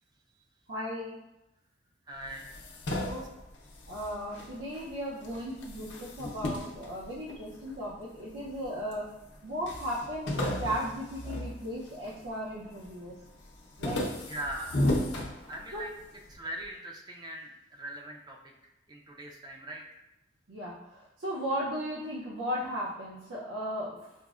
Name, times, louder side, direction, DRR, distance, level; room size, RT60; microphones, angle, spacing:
voice 1, 0.7-1.2 3.0-3.2 3.9-9.2 9.4-13.2 13.8-14.0 15.7-15.8 20.5-24.0, equal, 85° right, -7 dB, 0.6 m, -36 dB
voice 2, 2.1-2.5 5.3-5.4 14.3-15.0 15.5-15.9 16.3-20.0, right 1 dB, 20° right, 0 dB, 0.3 m, -41 dB
sound 1, 2.2-4.9 5.2-7.7 8.3-9.0 9.3-9.4 9.7-12.2 12.6-13.1 13.4-16.0, left 1 dB, 80° left, 0.6 m, -34 dB
5.3 x 2.0 x 2.3 m, 0.94 s
head